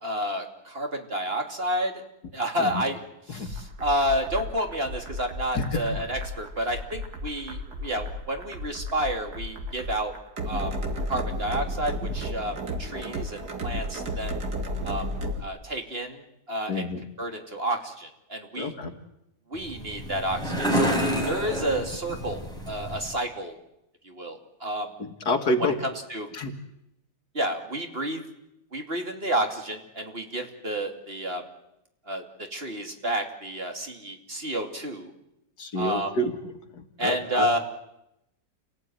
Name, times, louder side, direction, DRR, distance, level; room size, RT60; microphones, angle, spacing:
voice 1, 0.0-2.0 2.3-3.0 3.3-10.1 10.4-10.7 11.1-14.4 14.8-15.1 15.4-16.2 16.5-16.9 17.2-18.7 19.5-23.6 24.0-24.9 26.1-26.3 27.3-28.2 28.7-31.4 32.1-35.1 35.7-36.1 37.0-37.6, right 1 dB, 35° right, 4 dB, 3.1 m, -30 dB
sound 1, 3.5-15.4, equal, 70° right, 2.8 m, -33 dB
voice 2, 5.5-5.9 16.7-17.0 18.6-18.9 25.0-25.8 26.3-26.5 35.6-36.3 36.7-37.6, left 2 dB, 70° left, 6 dB, 2.6 m, -28 dB
sound 2, 19.5-23.1, equal, ahead, 5.6 m, -29 dB
29.0 x 18.5 x 9.4 m, 0.85 s
omnidirectional pair, 1.8 m